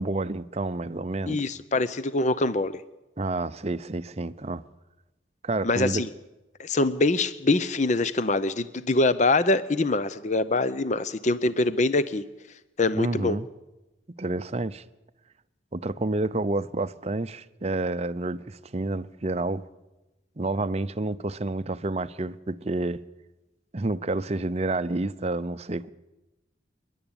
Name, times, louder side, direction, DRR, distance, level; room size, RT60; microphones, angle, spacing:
voice 1, 0.0-1.4 3.2-4.6 5.4-6.0 12.9-13.5 14.2-14.8 15.7-19.6 20.4-23.0 23.7-25.9, right 2 dB, 35° right, 0.6 m, -29 dB
voice 2, 1.3-2.7 5.6-6.1 6.6-12.2 12.8-13.4, left 2 dB, 40° left, 0.6 m, -24 dB
28.5 x 11.0 x 8.9 m
head